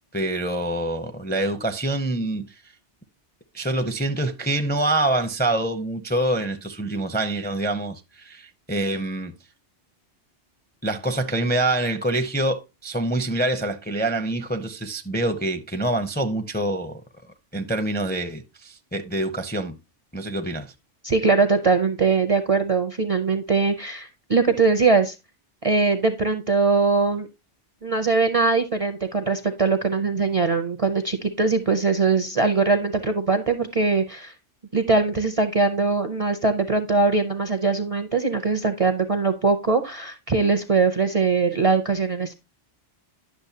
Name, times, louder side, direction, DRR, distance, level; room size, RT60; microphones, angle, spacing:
voice 1, 0.1-2.5 3.5-9.3 10.8-17.0 17.5-19.8 20.1-20.7, right 1 dB, 15° left, 0.4 m, -26 dB
voice 2, 21.0-25.2 25.6-27.3 27.8-34.3 34.7-42.3, right 4 dB, 40° right, 0.5 m, -21 dB
10.5 x 6.3 x 2.8 m
omnidirectional pair, 1.2 m